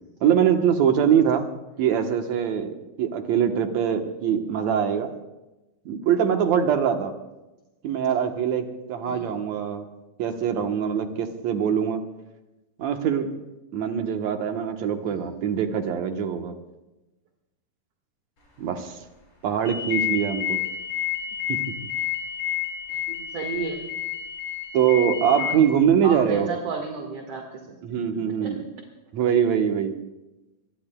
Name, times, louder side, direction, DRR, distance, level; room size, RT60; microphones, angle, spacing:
voice 1, 0.2-1.4 1.8-5.1 5.9-7.1 7.8-9.8 10.2-12.0 12.8-13.3 13.7-16.5 18.6-19.0 19.4-20.6 21.5-21.6 24.7-26.5 27.8-28.6 29.1-30.0, right 8 dB, 65° right, 5 dB, 1.9 m, -23 dB
voice 2, 15.0-15.3 22.9-23.9 25.3-25.6 26.0-27.6 27.9-28.0 28.4-28.5, right 4 dB, 50° right, 1 dB, 2.3 m, -33 dB
sound 1, 19.6-25.5, left 10 dB, 35° left, 6.5 m, -30 dB
26.5 x 22.5 x 2.3 m, 1.0 s
omnidirectional pair, 4.4 m